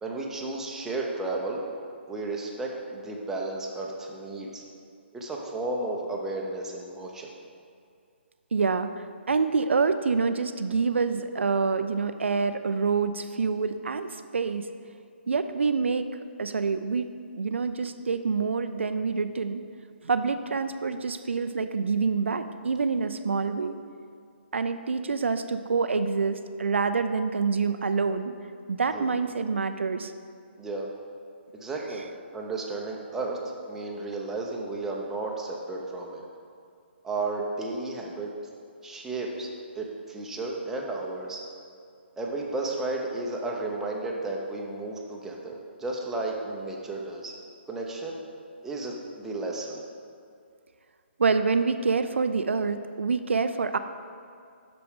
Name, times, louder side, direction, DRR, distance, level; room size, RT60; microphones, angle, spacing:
voice 1, 0.0-1.6 2.1-4.6 5.1-7.3 28.9-29.1 30.6-30.9 31.5-32.1 32.3-33.4 33.7-36.3 37.0-38.3 38.8-39.5 39.7-41.4 42.2-47.3 47.7-48.2 48.6-49.8, right 2 dB, 5° right, -2 dB, 0.7 m, -33 dB
voice 2, 8.5-14.7 15.3-16.1 16.4-17.1 17.4-19.6 20.0-23.8 24.5-28.3 28.7-30.1 51.2-53.8, right 4 dB, 80° right, 10 dB, 0.4 m, -26 dB
7.8 x 5.9 x 3.7 m, 2.3 s
hypercardioid pair, 140°, 6 cm